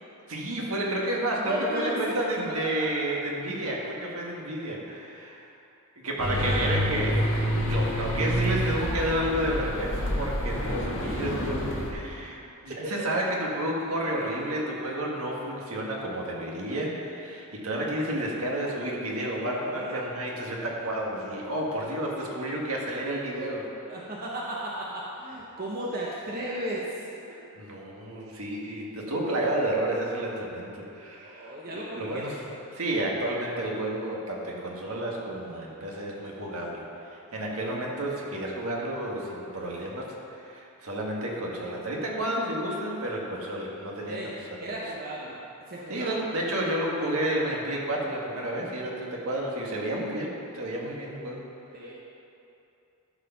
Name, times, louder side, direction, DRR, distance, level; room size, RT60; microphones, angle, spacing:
voice 1, 0.3-5.5 5.9-7.2 7.5-12.4 12.6-23.7 27.5-32.4 32.7-36.8 37.1-44.2 44.7-44.8 45.9-51.4, right 1 dB, 70° right, -2 dB, 1.7 m, -31 dB
voice 2, 1.4-2.2 6.2-7.0 10.2-10.5 12.4-12.5 19.6-20.0 23.9-27.0 31.2-32.4 44.1-44.3 44.6-45.4 45.7-46.2 51.7-51.9, right 1 dB, 40° right, -5 dB, 1.0 m, -34 dB
sound 1, 6.2-11.9, equal, 65° left, 1.4 m, -28 dB
13.0 x 4.9 x 5.8 m, 2.8 s
head